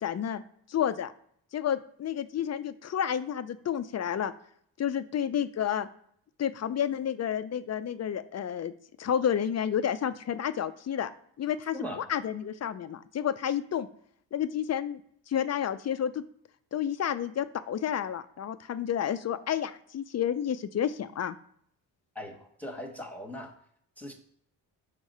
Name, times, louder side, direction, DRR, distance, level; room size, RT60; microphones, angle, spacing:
voice 1, 0.0-0.4 0.7-1.1 1.5-4.3 4.8-5.9 6.4-8.7 9.0-11.1 11.4-13.9 14.3-15.0 15.3-16.2 16.7-21.4, left 9 dB, 40° left, 12 dB, 0.4 m, -30 dB
voice 2, 22.1-23.5 24.0-24.1, equal, 5° left, 1 dB, 1.2 m, -39 dB
4.8 x 3.7 x 5.4 m, 0.66 s
cardioid pair, 70°, 44 cm